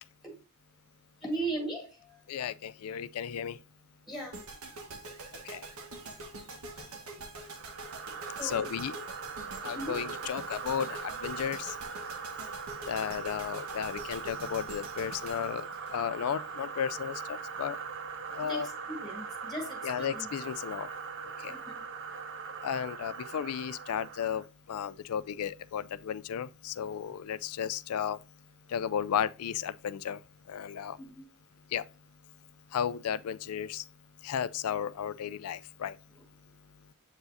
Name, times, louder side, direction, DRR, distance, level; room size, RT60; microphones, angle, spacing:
voice 1, 1.2-2.2 4.1-4.7 5.2-5.3 6.2-7.2 7.5-7.6 8.4-8.7 9.4-10.0 18.4-20.3 21.5-21.8 22.6-22.7 31.0-31.3, right 2 dB, ahead, 1.7 m, -39 dB
voice 2, 2.3-3.6 5.4-5.6 8.4-8.9 9.6-11.7 12.9-17.8 18.3-18.7 19.8-20.9 21.4-21.5 22.6-28.2 28.7-30.2 30.5-31.0 31.7-31.8 32.7-33.8 34.2-36.0, left 8 dB, 85° left, 0.4 m, -34 dB
sound 1, 4.3-16.5, right 3 dB, 80° right, 1.4 m, -45 dB
sound 2, 7.4-24.5, right 5 dB, 60° right, 0.6 m, -41 dB
7.7 x 4.8 x 2.6 m
head